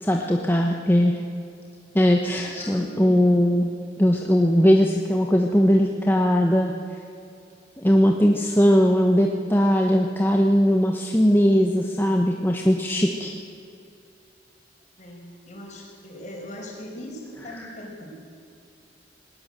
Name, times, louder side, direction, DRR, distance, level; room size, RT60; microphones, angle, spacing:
voice 1, 0.0-1.2 1.9-3.7 4.0-6.7 7.8-13.3 17.6-17.7, equal, 10° left, 1 dB, 1.2 m, -19 dB
voice 2, 2.3-3.1 15.0-18.3, equal, 40° left, -1 dB, 5.5 m, -40 dB
19.5 x 19.5 x 7.8 m, 2.5 s
head